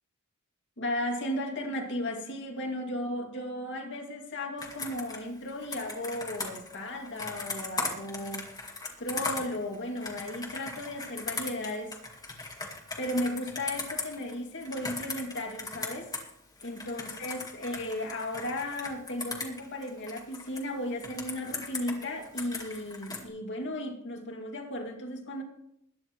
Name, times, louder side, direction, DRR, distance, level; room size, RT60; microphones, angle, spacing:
voice 1, 0.8-8.5 9.0-12.0 13.0-16.1 16.6-25.4, left 1 dB, 55° left, 2 dB, 2.3 m, -35 dB
Computer keyboard, 4.6-16.3 16.6-20.6 21.0-23.2, left 3 dB, 15° left, 2.1 m, -38 dB
21.0 x 9.9 x 3.1 m, 0.76 s
head